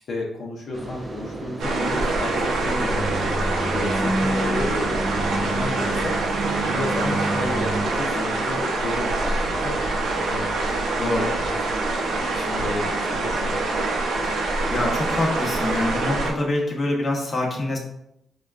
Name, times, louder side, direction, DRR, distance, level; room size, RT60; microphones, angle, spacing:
voice 1, 0.0-6.2 6.7-9.7 10.2-10.6 11.0-11.6 11.9-13.6, left 2 dB, 60° left, -3 dB, 0.7 m, -32 dB
sound 1, 0.7-7.9, right 2 dB, 30° right, 0.6 m, -29 dB
sound 2, 1.6-16.3, right 2 dB, 80° right, 0.6 m, -25 dB
voice 2, 14.7-17.8, left 1 dB, 30° left, -3 dB, 0.9 m, -25 dB
4.9 x 2.2 x 2.4 m, 0.80 s
cardioid pair, 110°, 0 cm